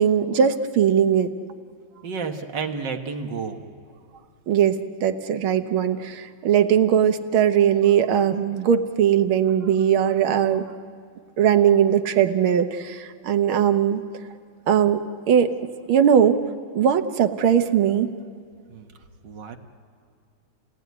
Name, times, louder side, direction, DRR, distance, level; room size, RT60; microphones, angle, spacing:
voice 1, 0.0-1.3 4.5-10.6 11.4-14.0 14.7-15.0 15.3-15.6 15.9-16.4 16.7-18.1, right 8 dB, 80° right, 8 dB, 1.9 m, -19 dB
voice 2, 2.0-3.6 18.7-18.9 19.2-19.6, right 5 dB, 60° right, 4 dB, 2.0 m, -31 dB
29.0 x 18.0 x 9.4 m, 2.3 s
omnidirectional pair, 2.3 m